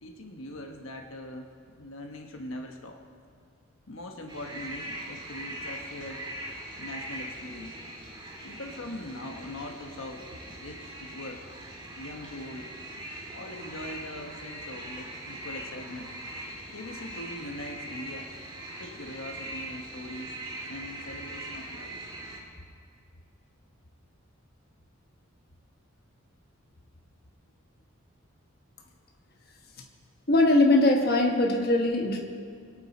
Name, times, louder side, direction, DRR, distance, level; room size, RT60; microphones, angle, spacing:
voice 1, 0.0-1.4 1.8-3.0 3.9-6.3 6.8-7.7 8.4-11.4 11.9-12.7 13.3-16.1 16.7-18.3 18.8-20.4 20.6-22.0, left 1 dB, 75° left, 3 dB, 1.1 m, -41 dB
sound 1, 4.3-22.4, right 1 dB, 25° right, 1.7 m, -41 dB
voice 2, 30.3-32.2, left 2 dB, 45° left, 1 dB, 1.2 m, -21 dB
23.5 x 8.9 x 4.3 m, 2.2 s
head